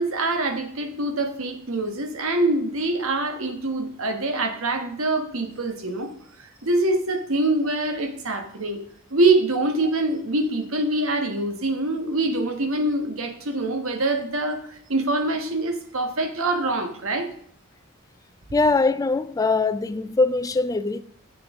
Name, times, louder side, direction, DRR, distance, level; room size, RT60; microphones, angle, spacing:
voice 1, 0.0-6.1 6.4-8.8 9.1-17.3, right 2 dB, 75° right, 1.3 m, -24 dB
voice 2, 18.5-21.0, left 3 dB, 15° left, 0.3 m, -22 dB
9.8 x 7.7 x 3.6 m
head